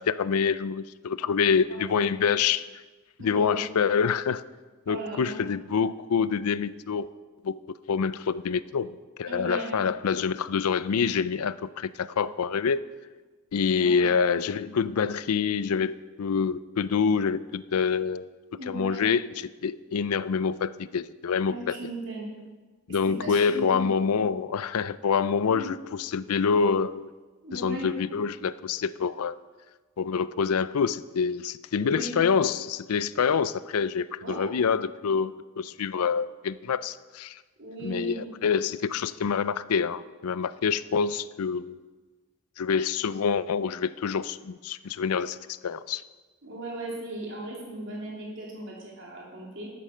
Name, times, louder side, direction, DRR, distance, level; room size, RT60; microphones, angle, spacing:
voice 1, 0.0-2.7 3.2-4.4 4.9-7.1 7.4-7.6 7.9-12.8 13.5-18.3 18.7-21.8 22.9-27.1 27.5-29.3 30.0-37.4 37.8-41.8 42.6-46.0, left 6 dB, 85° left, 17 dB, 0.4 m, -26 dB
voice 2, 1.7-2.0 3.2-3.6 4.9-5.4 9.3-9.7 13.8-14.0 18.5-19.1 21.5-22.3 23.0-23.9 25.5-25.7 27.4-27.9 31.8-32.2 34.2-34.6 37.6-38.3 46.4-49.7, right 1 dB, 55° right, -3 dB, 3.1 m, -37 dB
11.5 x 8.6 x 6.6 m, 1.3 s
head